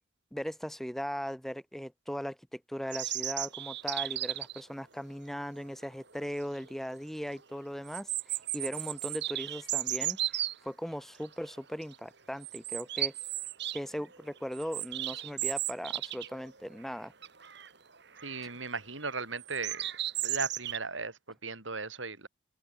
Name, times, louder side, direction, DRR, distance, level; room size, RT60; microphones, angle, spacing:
voice 1, 0.3-13.1 13.7-17.1, equal, ahead, 1.2 m, -38 dB
sound 1, 2.9-4.6 6.2-6.3 6.7-6.8 7.9-10.5 11.2-11.5 11.8-12.0 12.4-13.8 14.1-16.4 16.7-16.8 17.2-17.7 18.2-18.5 19.4-20.8, right 14 dB, 65° right, 4.1 m, -34 dB
voice 2, 18.2-19.9 20.2-22.3, right 4 dB, 85° right, 7.3 m, -37 dB
open air
head